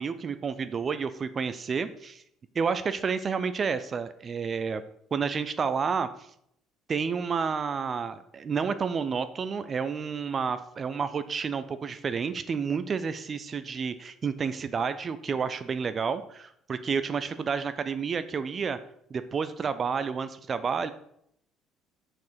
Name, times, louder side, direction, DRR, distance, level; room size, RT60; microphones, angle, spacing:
voice 1, 0.0-2.2 2.5-4.8 5.1-6.3 6.9-18.8 19.1-20.9, right 6 dB, 35° right, 12 dB, 0.4 m, -30 dB
6.5 x 4.5 x 4.8 m, 0.72 s
figure-of-eight pair, 55°, 0 cm